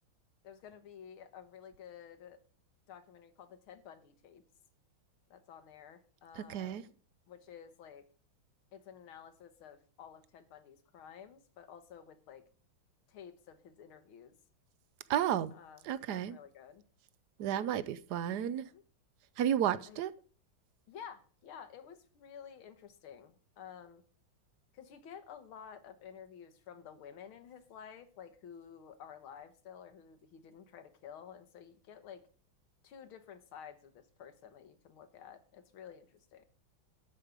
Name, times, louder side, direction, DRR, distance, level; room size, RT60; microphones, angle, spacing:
voice 1, 0.4-2.4 2.9-4.4 5.3-6.9 7.3-8.1 8.7-12.4 13.1-14.3 15.5-15.8 16.1-16.8 18.2-18.8 19.9-20.0 20.9-24.0 24.7-32.2 32.8-36.4, left 8 dB, 85° left, 2.1 m, -52 dB
voice 2, 6.4-6.8 15.1-15.5 15.8-16.4 17.4-18.7 19.4-20.1, right 10 dB, 70° right, 1.1 m, -32 dB
12.0 x 5.2 x 8.0 m
omnidirectional pair, 2.2 m